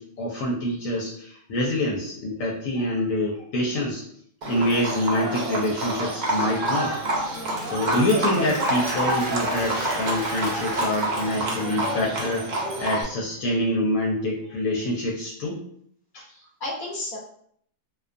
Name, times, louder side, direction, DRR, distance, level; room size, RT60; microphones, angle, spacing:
voice 1, 0.0-4.0 4.5-7.0 7.6-15.6 16.1-16.3, left 1 dB, 75° left, -3 dB, 0.9 m, -26 dB
Livestock farm animals working animals, 4.4-13.0, right 1 dB, 80° right, 0.4 m, -28 dB
Applause, 6.5-12.3, right 1 dB, 30° right, 0.6 m, -36 dB
voice 2, 7.3-7.8 16.3-17.2, left 2 dB, 40° left, -6 dB, 1.1 m, -34 dB
2.4 x 2.2 x 2.5 m, 0.65 s
omnidirectional pair, 1.5 m